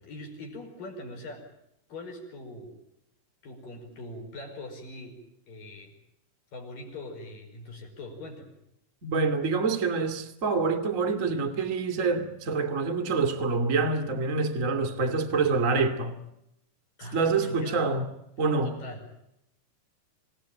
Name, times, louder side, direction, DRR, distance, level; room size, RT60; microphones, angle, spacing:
voice 1, 0.0-1.5 1.9-2.8 3.4-5.9 6.5-8.5 17.0-17.8 18.6-19.2, left 1 dB, 45° left, 6.6 m, -42 dB
voice 2, 9.0-16.2 17.1-18.0 18.4-18.7, right 4 dB, 30° right, 1.4 m, -26 dB
27.0 x 18.0 x 9.1 m
omnidirectional pair, 5.6 m